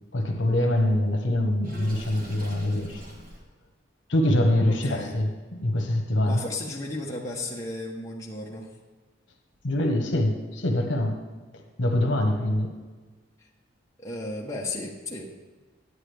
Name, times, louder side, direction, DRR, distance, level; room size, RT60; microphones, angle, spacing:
voice 1, 0.1-3.0 4.1-5.3 5.6-6.4 9.6-11.2 11.8-12.7, left 1 dB, 65° left, 3 dB, 1.1 m, -24 dB
Water / Sink (filling or washing), 1.6-3.4, right 1 dB, 45° right, 1.4 m, -41 dB
voice 2, 4.8-5.2 6.3-8.7 14.0-15.3, left 2 dB, 15° left, -3 dB, 1.0 m, -34 dB
9.8 x 9.4 x 3.4 m, 1.4 s
head